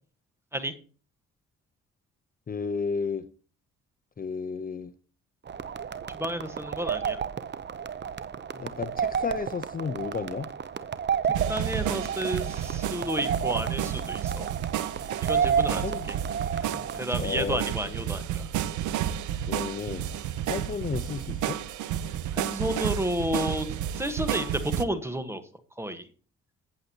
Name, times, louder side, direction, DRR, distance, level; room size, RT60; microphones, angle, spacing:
voice 1, 2.5-3.2 4.2-4.9 8.5-10.5 15.8-16.1 17.2-18.1 19.5-20.1 20.5-21.6, left 5 dB, 30° left, 9 dB, 0.7 m, -33 dB
sound 1, 5.5-17.0, right 7 dB, 35° right, 0.7 m, -31 dB
voice 2, 6.1-7.2 11.5-14.5 15.2-15.8 16.6-18.4 22.3-25.4 25.8-26.0, equal, 10° right, 10 dB, 1.3 m, -31 dB
sound 2, 11.3-24.8, right 10 dB, 75° right, 0.7 m, -31 dB
15.0 x 8.0 x 2.9 m, 0.40 s
cardioid pair, 90°, 30 cm